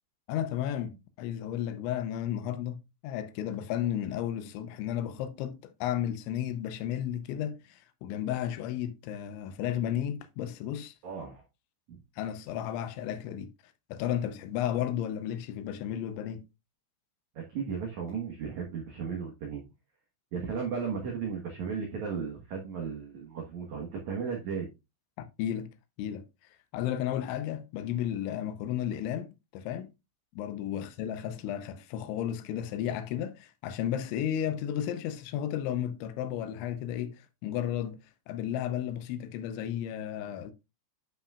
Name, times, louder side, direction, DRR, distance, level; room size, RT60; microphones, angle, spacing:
voice 1, 0.3-10.9 12.2-13.5 13.9-16.5 25.4-26.2 26.7-29.9 30.4-38.0 38.3-40.5, left 10 dB, 90° left, 3.1 m, -33 dB
voice 2, 11.0-11.4 11.9-12.0 17.4-19.6 20.3-24.7 30.7-30.9, right 6 dB, 70° right, 1.7 m, -35 dB
10.0 x 5.7 x 2.4 m
omnidirectional pair, 5.3 m